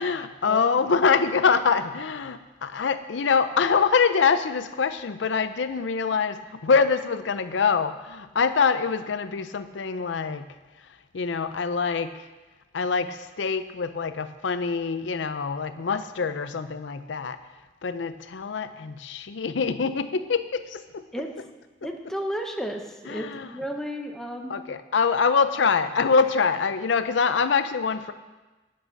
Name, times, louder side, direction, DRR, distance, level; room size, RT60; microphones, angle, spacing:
voice 1, 0.0-10.5 11.1-12.3 12.7-17.4 17.8-21.0 23.1-23.5 24.5-28.1, left 5 dB, 80° left, 11 dB, 0.5 m, -24 dB
voice 2, 21.8-24.5, equal, 5° left, 2 dB, 1.0 m, -33 dB
12.0 x 8.5 x 5.3 m, 1.2 s
head